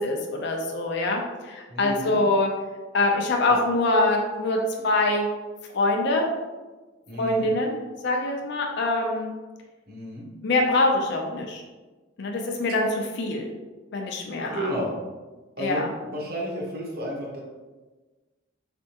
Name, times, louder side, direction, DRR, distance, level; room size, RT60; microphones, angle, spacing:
voice 1, 0.0-2.5 2.9-5.3 5.7-6.3 7.2-7.8 8.0-9.3 10.4-11.6 12.2-13.5 13.9-14.7 15.6-15.9, left 2 dB, 60° left, 1 dB, 0.5 m, -24 dB
voice 2, 1.7-2.2 7.1-7.5 9.9-10.3 14.5-15.0 15.6-17.4, equal, 50° right, -2 dB, 1.0 m, -32 dB
4.3 x 3.3 x 2.9 m, 1.2 s
head